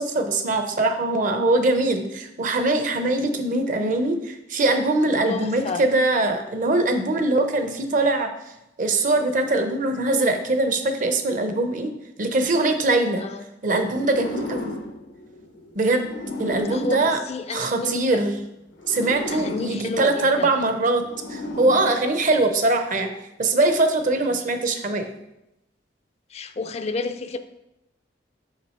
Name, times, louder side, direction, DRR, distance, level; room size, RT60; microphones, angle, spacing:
voice 1, 0.0-8.3 8.8-11.9 12.2-13.2 13.6-14.7 15.7-16.1 16.4-17.2 17.5-18.4 18.9-21.0 21.3-23.1 23.4-25.2, right 2 dB, 45° right, 7 dB, 0.7 m, -22 dB
voice 2, 5.3-5.8 13.2-13.4 16.7-18.2 19.3-20.5 26.3-27.4, left 3 dB, 35° left, 9 dB, 0.4 m, -31 dB
sound 1, 13.9-18.0 18.7-22.7, left 1 dB, 90° left, 0.9 m, -36 dB
6.2 x 5.9 x 4.3 m, 0.87 s
head